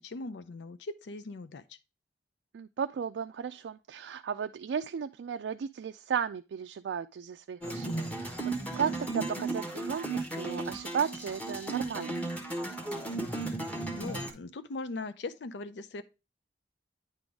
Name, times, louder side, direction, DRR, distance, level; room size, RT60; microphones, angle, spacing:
voice 1, 0.0-1.6 13.9-16.0, left 3 dB, 80° left, 0.5 m, -40 dB
voice 2, 2.5-12.2, right 7 dB, 90° right, 0.3 m, -35 dB
sound 1, 7.6-14.3, right 2 dB, 10° left, 1.3 m, -35 dB
9.6 x 3.9 x 3.4 m
head